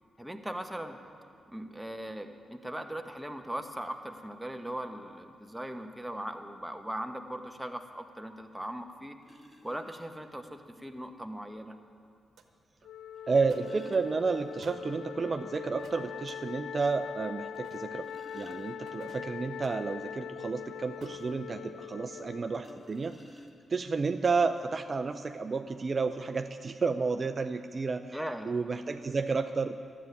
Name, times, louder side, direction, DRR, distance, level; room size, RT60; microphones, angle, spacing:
voice 1, 0.2-1.0 1.5-9.2 9.6-11.8 28.1-28.5, right 1 dB, 5° right, 5 dB, 1.4 m, -39 dB
sound 1, 8.5-8.6 9.2-9.9 11.3-11.4 13.2-14.9 15.2-15.3 15.7-15.8 16.3-16.4 17.7-19.2 22.5-23.9 24.8-24.9 25.2-25.4, left 1 dB, 15° left, 2.4 m, -54 dB
sound 2, 12.4-12.5 13.4-13.8 14.6-14.9 15.8-16.4 17.5-18.0 18.9-19.7 21.0-21.3, right 5 dB, 70° right, 1.3 m, -54 dB
Wind instrument woodwind instrument, 12.8-23.2, left 9 dB, 75° left, 0.4 m, -42 dB
voice 2, 13.3-18.1 18.3-23.2 23.7-28.2 28.5-29.8, right 4 dB, 45° right, 7 dB, 0.6 m, -31 dB
12.5 x 8.5 x 9.5 m, 2.3 s
hypercardioid pair, 40°, 0 cm